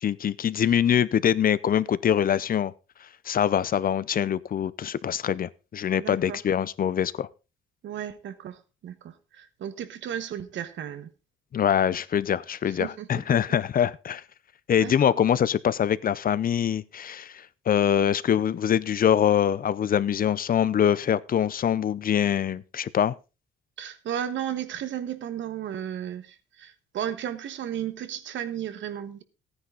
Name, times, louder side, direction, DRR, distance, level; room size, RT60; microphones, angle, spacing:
voice 1, 0.0-2.7 3.3-7.3 11.5-14.2 14.7-23.2, left 9 dB, 45° left, 0.6 m, -24 dB
voice 2, 6.0-6.4 7.8-8.6 8.8-11.1 12.7-13.1 14.8-15.1 23.8-29.2, right 10 dB, 70° right, 1.3 m, -34 dB
14.0 x 9.7 x 3.9 m
cardioid pair, 90°, 20 cm